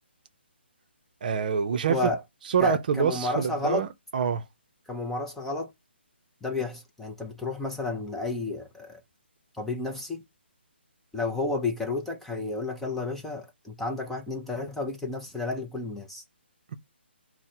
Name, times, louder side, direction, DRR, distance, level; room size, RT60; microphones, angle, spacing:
voice 1, 1.2-2.0 2.5-4.4, right 7 dB, 45° right, 0.6 m, -26 dB
voice 2, 1.9-2.2 2.6-3.9 4.9-5.7 6.4-9.0 9.6-10.2 11.1-16.2, left 3 dB, 5° left, 0.5 m, -31 dB
3.6 x 2.1 x 4.3 m
hypercardioid pair, 155°, 6 cm